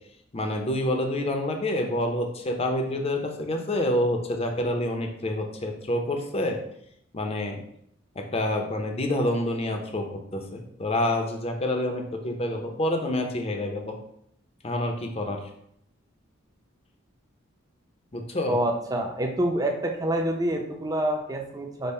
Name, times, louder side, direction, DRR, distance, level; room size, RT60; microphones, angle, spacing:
voice 1, 0.3-6.6 7.1-7.6 8.2-14.0 14.6-15.4 18.1-18.6, left 1 dB, 30° left, 3 dB, 0.5 m, -27 dB
voice 2, 18.5-21.9, right 1 dB, 20° right, 2 dB, 0.5 m, -27 dB
5.3 x 2.0 x 4.1 m, 0.73 s
head